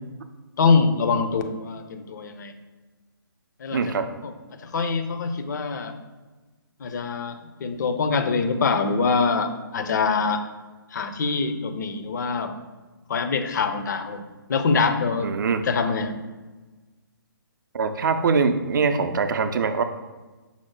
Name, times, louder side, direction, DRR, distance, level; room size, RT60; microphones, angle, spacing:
voice 1, 0.6-2.5 3.6-4.3 4.6-5.9 6.8-10.4 10.9-12.5 13.1-15.3 15.6-16.1, left 4 dB, 50° left, 8 dB, 0.6 m, -24 dB
voice 2, 3.7-4.1 15.2-15.6 17.7-19.8, right 5 dB, 55° right, 9 dB, 0.4 m, -23 dB
5.6 x 2.1 x 4.6 m, 1.2 s
figure-of-eight pair, 145°, 12 cm